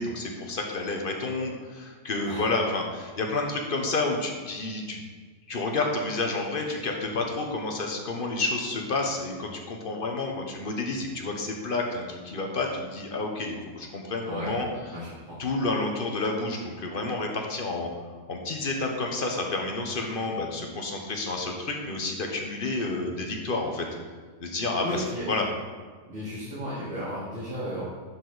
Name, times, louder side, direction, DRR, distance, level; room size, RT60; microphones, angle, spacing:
voice 1, 0.0-5.0 5.5-14.7 15.4-17.9 18.3-23.9 24.4-24.9 25.3-25.5, left 3 dB, 45° left, 1 dB, 1.2 m, -30 dB
voice 2, 14.2-14.6 14.9-15.4 24.8-25.3 26.0-27.8, equal, 65° right, -11 dB, 2.6 m, -34 dB
11.0 x 4.8 x 4.0 m, 1.5 s
omnidirectional pair, 1.3 m